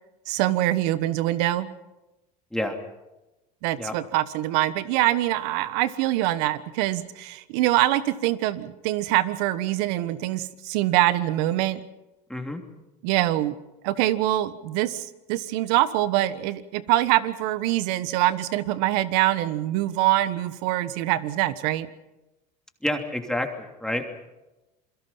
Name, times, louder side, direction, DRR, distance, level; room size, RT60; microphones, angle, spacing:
voice 1, 0.3-1.7 3.6-11.8 13.0-13.5 13.8-21.9, right 15 dB, 75° right, 14 dB, 1.4 m, -24 dB
voice 2, 12.3-12.6 22.8-24.2, left 1 dB, 5° left, 3 dB, 3.0 m, -29 dB
27.5 x 22.5 x 5.7 m, 1.0 s
supercardioid pair, 90°, 21 cm